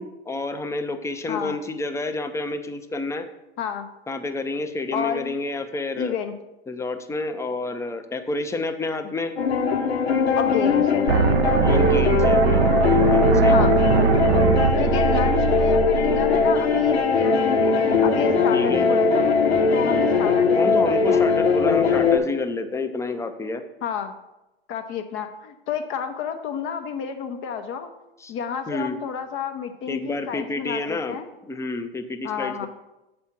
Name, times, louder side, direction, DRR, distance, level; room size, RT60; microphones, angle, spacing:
voice 1, 0.0-3.3 4.1-6.2 6.7-9.3 11.6-14.0 14.8-15.5 18.5-18.9 20.6-23.6 28.2-28.3 28.7-29.0 29.9-31.2 31.5-32.7, left 3 dB, 10° left, 8 dB, 0.6 m, -29 dB
voice 2, 4.9-5.3 5.9-6.3 10.4-11.1 13.5-13.7 14.8-21.2 23.8-24.1 24.7-27.9 28.3-31.3 32.2-32.7, left 7 dB, 40° left, 7 dB, 0.7 m, -30 dB
sound 1, 9.4-22.2, left 4 dB, 85° left, 1.1 m, -20 dB
sound 2, 11.1-17.0, right 7 dB, 75° right, 0.5 m, -21 dB
7.3 x 4.3 x 5.8 m, 0.96 s
hypercardioid pair, 100°, 31 cm